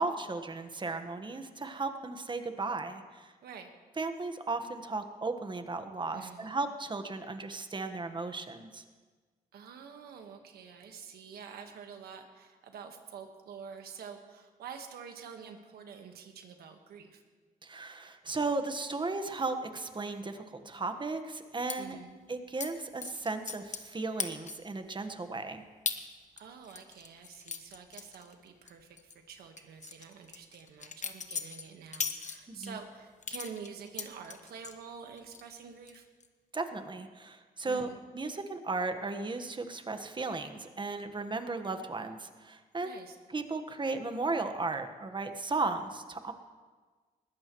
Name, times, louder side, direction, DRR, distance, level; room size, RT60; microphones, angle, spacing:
voice 1, 0.0-3.3 4.0-8.8 17.6-21.9 22.3-25.6 32.5-32.7 36.5-43.0 43.3-46.3, right 3 dB, 30° right, 8 dB, 1.4 m, -35 dB
voice 2, 3.4-3.7 6.1-6.6 9.5-17.2 21.8-22.1 26.4-36.1 37.6-38.0 42.8-43.1, right 6 dB, 90° right, 5 dB, 1.5 m, -47 dB
sound 1, 21.7-21.8 22.6-22.7 23.0-23.9 24.2-24.7 25.2-25.3 25.9-26.0 26.4-28.7 29.0-29.1 29.6-32.7 33.2-34.8 35.2-35.6 35.9-36.3, left 5 dB, 50° left, 1.2 m, -38 dB
20.5 x 15.0 x 3.1 m, 1.4 s
cardioid pair, 75°, 16 cm